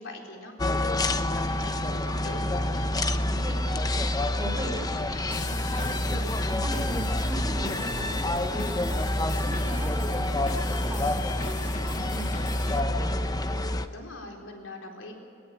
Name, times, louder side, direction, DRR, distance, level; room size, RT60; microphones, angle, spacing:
voice 1, 0.0-2.6 3.1-3.4 13.9-15.1, left 2 dB, 80° left, 1 dB, 4.3 m, -43 dB
sound 1, 0.6-13.9, left 1 dB, 20° left, 0.8 m, -27 dB
voice 2, 2.6-4.0 4.3-6.2 6.4-9.0 9.3-11.2 11.4-13.3, right 1 dB, 15° right, -3 dB, 3.3 m, -40 dB
sound 2, 5.3-12.8, left 4 dB, 40° left, 1.1 m, -41 dB
22.0 x 19.5 x 8.5 m, 2.7 s
head